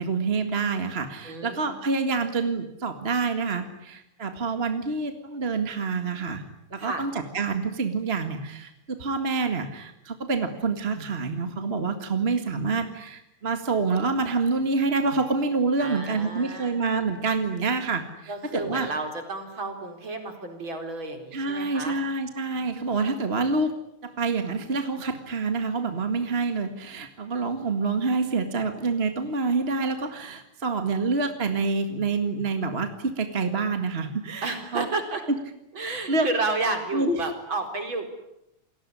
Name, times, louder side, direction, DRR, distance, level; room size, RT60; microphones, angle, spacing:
voice 1, 0.0-6.4 6.7-18.9 21.3-23.7 24.0-34.9 35.8-36.3 36.9-37.3, right 4 dB, 25° right, 7 dB, 1.6 m, -27 dB
voice 2, 1.2-1.7 6.8-7.0 15.8-16.8 18.3-22.0 22.5-23.3 34.4-35.2 35.7-38.1, right 3 dB, 40° right, 5 dB, 4.9 m, -32 dB
29.0 x 20.0 x 9.9 m, 0.82 s
omnidirectional pair, 3.4 m